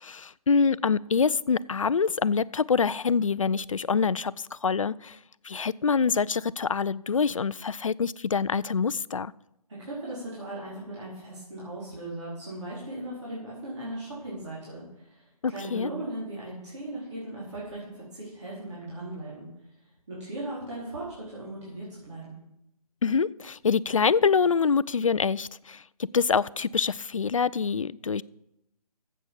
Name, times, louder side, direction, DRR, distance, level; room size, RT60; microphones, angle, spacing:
voice 1, 0.0-5.2 5.4-9.3 15.4-15.9 23.0-25.8 26.1-28.2, left 5 dB, 55° left, 20 dB, 0.4 m, -25 dB
voice 2, 9.9-19.5 20.1-22.4, right 1 dB, 45° right, -8 dB, 4.4 m, -38 dB
11.0 x 7.9 x 7.2 m, 0.82 s
figure-of-eight pair, 150°, 20 cm